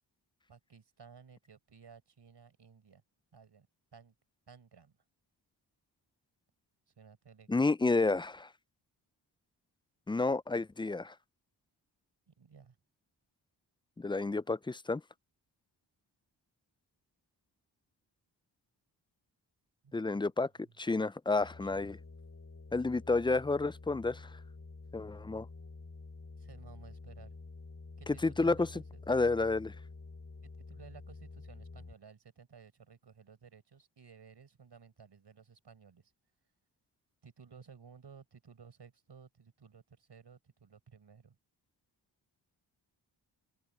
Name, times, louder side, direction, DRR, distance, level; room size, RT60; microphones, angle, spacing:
voice 1, 0.5-3.0 3.3-3.7 3.9-4.1 4.5-5.0 7.0-7.7 12.3-12.8 19.8-20.3 20.6-20.7 21.6-21.9 26.4-27.4 28.0-29.1 30.4-36.1 37.2-41.4, right 6 dB, 65° right, 5.0 m, -56 dB
voice 2, 7.5-8.5 10.1-11.1 14.0-15.0 19.9-20.5 20.8-22.0 22.7-24.3 24.9-25.5 28.1-28.7 29.1-29.7, left 3 dB, 10° left, 0.4 m, -30 dB
sound 1, 21.4-31.9, left 3 dB, 35° left, 4.3 m, -49 dB
open air
cardioid pair, 55°, 45 cm